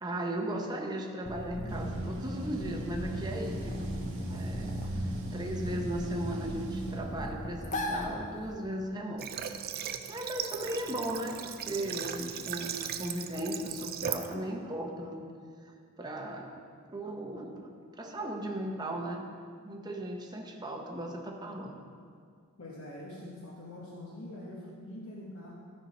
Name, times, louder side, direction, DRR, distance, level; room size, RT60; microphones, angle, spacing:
voice 1, 0.0-3.9 4.3-9.3 10.1-15.3 16.0-17.7 18.0-19.3 19.6-21.8, right 1 dB, 20° right, 1 dB, 0.8 m, -37 dB
sound 1, 1.2-8.7, equal, 35° left, 0.8 m, -37 dB
sound 2, 1.7-7.0, right 2 dB, 60° right, 1.1 m, -39 dB
Water / Water tap faucet, 9.2-14.3, right 8 dB, 45° right, 0.4 m, -38 dB
voice 2, 22.6-25.5, left 1 dB, 65° left, -5 dB, 1.3 m, -44 dB
13.0 x 4.5 x 5.3 m, 2.2 s
head